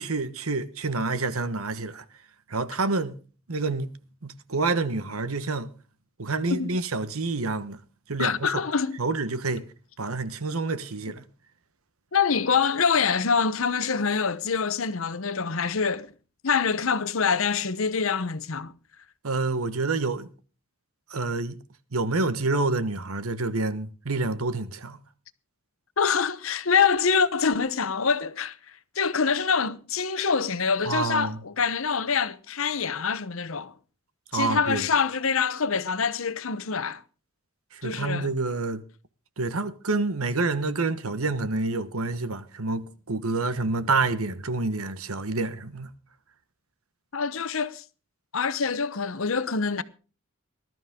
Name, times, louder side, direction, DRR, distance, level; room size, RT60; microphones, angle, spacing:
voice 1, 0.0-2.0 2.5-3.1 3.5-3.9 4.2-5.7 6.2-7.8 8.1-8.6 9.0-9.6 10.0-11.2 19.2-20.3 21.1-21.6 21.9-25.0 30.9-31.4 34.3-34.9 37.7-38.8 39.4-45.9, right 3 dB, 90° right, 1.3 m, -28 dB
voice 2, 8.2-9.0 12.1-16.1 16.4-18.7 26.0-33.7 34.3-37.0 37.8-38.3 47.1-47.8 48.3-49.8, left 5 dB, 70° left, 0.9 m, -25 dB
20.0 x 12.5 x 3.7 m
head